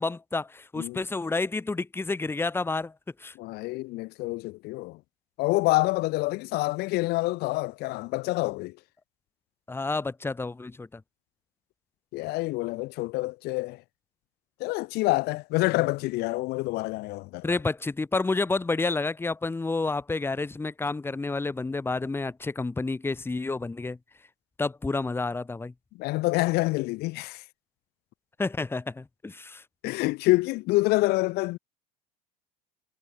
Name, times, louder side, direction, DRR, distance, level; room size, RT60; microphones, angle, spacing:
voice 1, 0.0-2.9 3.2-3.3 9.7-11.0 17.4-24.0 24.6-25.7 28.4-29.6, left 3 dB, 10° left, 1.7 m, -29 dB
voice 2, 3.4-5.0 5.4-8.7 12.1-13.8 14.6-17.6 26.0-27.4 29.8-31.6, left 21 dB, 65° left, 1.5 m, -27 dB
supercardioid pair, 100°, 18 cm